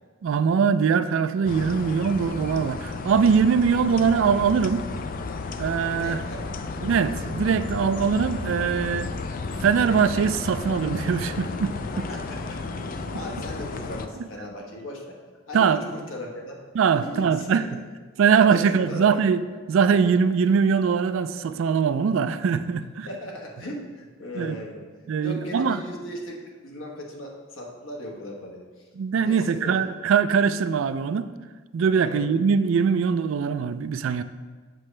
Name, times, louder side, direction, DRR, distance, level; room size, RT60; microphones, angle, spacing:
voice 1, 0.2-4.8 5.6-6.2 6.8-9.1 9.6-11.7 15.5-15.8 16.7-17.6 18.2-19.4 19.7-23.1 24.4-24.6 25.1-25.8 29.0-31.3 31.7-34.2, right 6 dB, 65° right, 12 dB, 0.3 m, -22 dB
sound 1, 1.5-14.1, left 3 dB, 40° left, 0.4 m, -33 dB
voice 2, 6.0-6.5 11.9-12.6 12.9-15.2 15.5-16.6 17.0-17.5 18.5-19.2 23.0-24.8 25.2-28.8 29.3-29.9 32.0-32.2, equal, 65° left, -1 dB, 1.2 m, -37 dB
7.5 x 6.3 x 3.3 m, 1.4 s
head